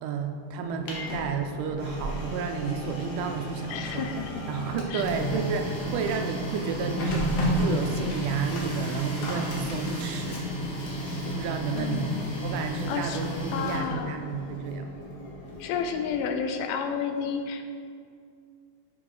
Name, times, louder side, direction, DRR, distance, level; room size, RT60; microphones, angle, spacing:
voice 1, 0.0-4.1 4.5-7.3 7.6-10.5 11.2-14.9, right 6 dB, 85° right, 5 dB, 2.1 m, -31 dB
Printer, 0.6-16.4, equal, 75° left, 2.5 m, -32 dB
voice 2, 3.7-4.4 4.9-5.0 11.8-12.2 12.9-13.2 13.5-14.2 15.6-17.6, left 6 dB, 90° left, 6 dB, 2.1 m, -31 dB
7.6 x 3.8 x 4.7 m, 2.3 s
omnidirectional pair, 3.6 m